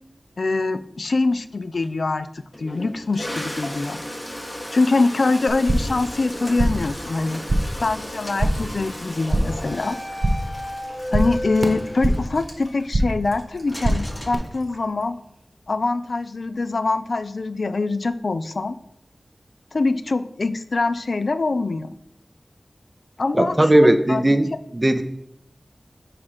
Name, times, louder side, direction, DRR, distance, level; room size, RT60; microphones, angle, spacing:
voice 1, 0.4-2.3 2.6-4.0 4.7-7.4 7.8-10.0 11.1-15.2 15.7-18.8 19.7-21.9 23.2-24.3, left 3 dB, 75° left, 12 dB, 0.3 m, -24 dB
Toilet flush, 1.8-1.9 2.5-15.0, equal, 40° left, 1.6 m, -36 dB
sound 1, 5.5-6.0 6.3-6.9 7.2-7.8 8.1-8.7 9.0-9.7 10.0-10.6 10.8-12.4 12.6-13.3 13.5-14.3, right 1 dB, 60° right, 1.0 m, -24 dB
sound 2, 6.1-8.0 8.2-8.6 9.6-12.8 13.7-15.1, equal, 25° left, 1.0 m, -35 dB
voice 2, 23.3-24.5 24.7-25.0, right 1 dB, 30° right, 7 dB, 0.4 m, -17 dB
4.8 x 4.7 x 5.6 m, 0.77 s
wide cardioid pair, 55°, 0 cm